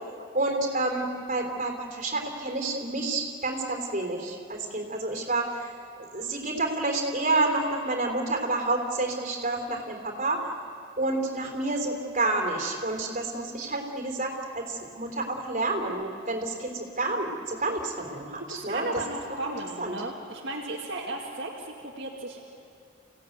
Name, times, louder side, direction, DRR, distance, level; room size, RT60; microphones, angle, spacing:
voice 1, 0.3-5.5 6.0-10.5 11.0-18.9 19.4-19.5 19.8-19.9, right 2 dB, 40° right, 2 dB, 3.6 m, -29 dB
voice 2, 18.5-22.5, right 2 dB, 60° right, -3 dB, 2.0 m, -35 dB
28.5 x 16.5 x 9.4 m, 2.3 s
head